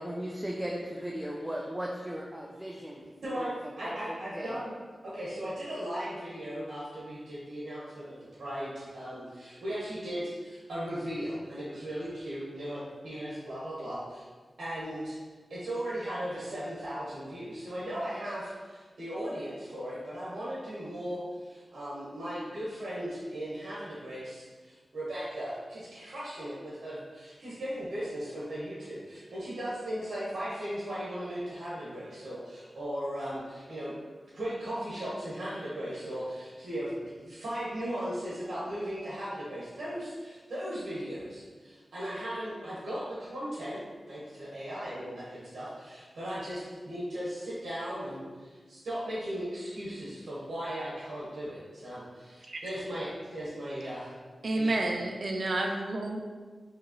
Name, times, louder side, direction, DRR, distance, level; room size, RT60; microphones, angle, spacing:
voice 1, 0.0-3.0 3.3-3.6 3.8-4.0 4.3-4.6, equal, 10° right, -2 dB, 0.5 m, -36 dB
voice 2, 3.2-4.7 5.0-14.2 14.6-15.2 15.5-33.9 34.3-43.8 44.1-54.1 54.5-54.9, equal, 85° right, -9 dB, 1.1 m, -37 dB
voice 3, 54.4-56.2, right 2 dB, 65° right, 2 dB, 0.5 m, -30 dB
5.0 x 2.9 x 3.0 m, 1.5 s
cardioid pair, 60°, 0 cm